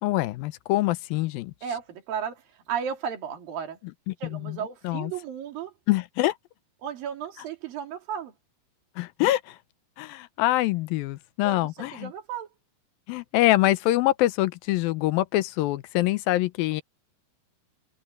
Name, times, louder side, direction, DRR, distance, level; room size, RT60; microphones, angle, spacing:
voice 1, 0.0-1.5 4.1-4.6 4.8-5.1 5.9-6.3 9.0-9.6 10.0-12.1 13.1-16.8, left 16 dB, 85° left, 2.5 m, -25 dB
voice 2, 1.6-3.8 4.2-5.7 6.8-8.3 11.4-12.5, right 8 dB, 70° right, 4.5 m, -34 dB
open air
omnidirectional pair, 4.2 m